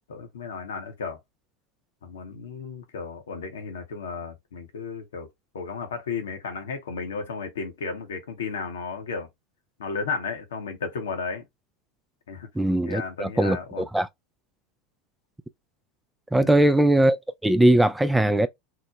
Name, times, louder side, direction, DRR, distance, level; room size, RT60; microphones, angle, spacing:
voice 1, 0.1-1.2 2.0-5.3 5.5-9.3 9.8-11.4 12.3-12.5 12.9-13.9 16.3-16.7, left 5 dB, 80° left, 0.9 m, -34 dB
voice 2, 12.6-14.1 16.3-17.2 17.4-18.5, right 1 dB, 5° right, 0.3 m, -20 dB
2.9 x 2.1 x 3.8 m
hypercardioid pair, 90°, 0 cm